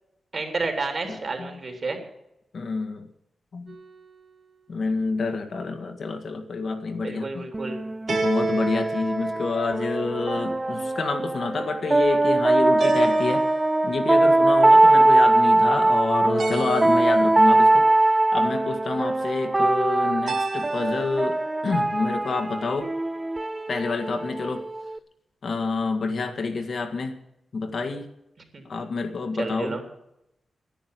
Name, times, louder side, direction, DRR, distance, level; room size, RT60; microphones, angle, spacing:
voice 1, 0.3-2.0 7.0-7.8 28.5-28.6 29.4-29.8, right 3 dB, 45° right, 4 dB, 3.5 m, -30 dB
voice 2, 2.5-3.1 3.5-3.8 4.7-7.5 8.1-13.5 13.8-22.9 23.7-24.6 25.4-27.2 27.5-28.1 28.7-29.8, left 4 dB, 65° left, 5 dB, 1.8 m, -28 dB
sound 1, 3.7-4.3 8.1-10.1 12.8-14.2 16.4-17.6 20.3-21.2, right 4 dB, 70° right, 2.6 m, -33 dB
sound 2, 7.5-25.0, right 2 dB, 20° right, 0.4 m, -21 dB
11.0 x 10.5 x 9.2 m, 0.83 s
wide cardioid pair, 95°, 0 cm